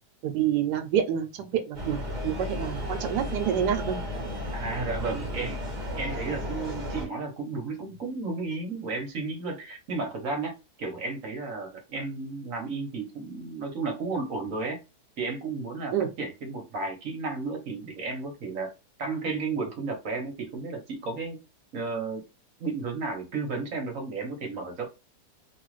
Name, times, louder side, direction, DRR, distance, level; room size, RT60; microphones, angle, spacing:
voice 1, 0.2-4.0 15.9-16.1, right 9 dB, 80° right, 1.2 m, -27 dB
sound 1, 1.7-7.1, left 1 dB, 30° right, 1.0 m, -34 dB
voice 2, 4.5-5.6 6.0-14.8 15.2-18.7 19.0-21.4 21.7-22.2 22.6-24.9, right 3 dB, 55° right, 1.2 m, -33 dB
3.1 x 2.4 x 3.1 m
omnidirectional pair, 1.8 m